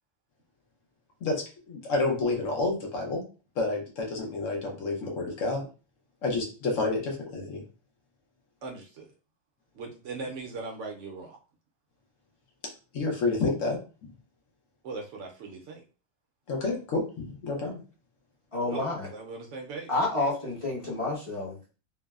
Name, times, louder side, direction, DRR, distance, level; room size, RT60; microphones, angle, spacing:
voice 1, 1.2-3.2 3.6-5.7 6.2-7.6 12.9-14.1 16.5-17.8, left 3 dB, 70° left, 1 dB, 1.1 m, -29 dB
voice 2, 8.6-9.1 9.7-11.4 14.8-15.8 18.7-19.9, right 3 dB, 70° right, 1 dB, 0.8 m, -39 dB
voice 3, 18.5-19.1 19.9-21.8, left 2 dB, 25° left, -5 dB, 0.9 m, -29 dB
3.2 x 2.0 x 2.3 m, 0.35 s
omnidirectional pair, 1.4 m